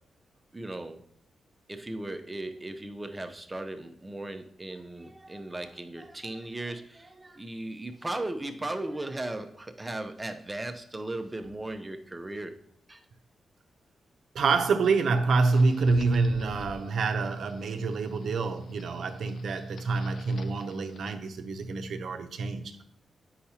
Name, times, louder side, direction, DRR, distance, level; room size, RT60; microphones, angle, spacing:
voice 1, 0.5-1.0 1.7-12.6 12.9-13.1, right 2 dB, 15° right, 0.7 m, -37 dB
voice 2, 14.3-22.8, right 4 dB, 75° right, 0.7 m, -27 dB
sound 1, 15.4-21.1, left 3 dB, 65° left, 0.5 m, -48 dB
8.2 x 5.7 x 2.8 m
cardioid pair, 95°, 0 cm